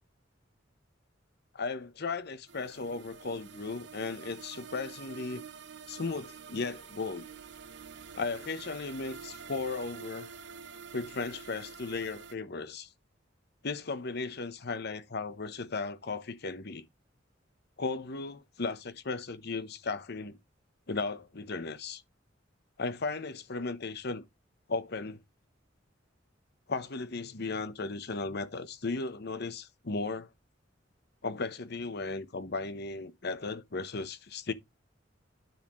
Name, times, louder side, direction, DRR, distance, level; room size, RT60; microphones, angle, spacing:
voice 1, 1.5-5.4 5.9-7.3 8.1-10.3 10.9-12.9 13.6-16.8 17.8-20.4 20.9-22.0 22.8-24.2 24.7-25.2 26.7-30.3 31.2-34.5, left 3 dB, 60° left, 1.0 m, -36 dB
sound 1, 2.5-12.3, right 6 dB, 65° right, 0.9 m, -48 dB
9.9 x 7.2 x 3.2 m
head